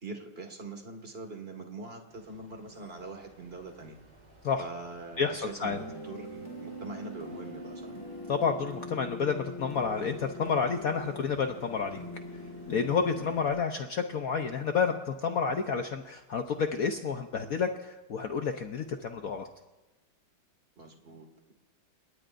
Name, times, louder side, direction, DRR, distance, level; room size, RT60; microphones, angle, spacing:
voice 1, 0.0-4.0 4.6-8.0 20.8-21.5, right 3 dB, 30° right, 4 dB, 2.1 m, -43 dB
sound 1, 2.1-13.4, right 1 dB, 60° right, 7.2 m, -58 dB
voice 2, 5.2-5.8 8.3-12.0 12.7-19.5, left 6 dB, 55° left, 5 dB, 1.1 m, -30 dB
sound 2, 5.7-13.5, left 1 dB, 15° left, 5.9 m, -42 dB
29.5 x 18.0 x 2.6 m, 1.1 s
omnidirectional pair, 2.1 m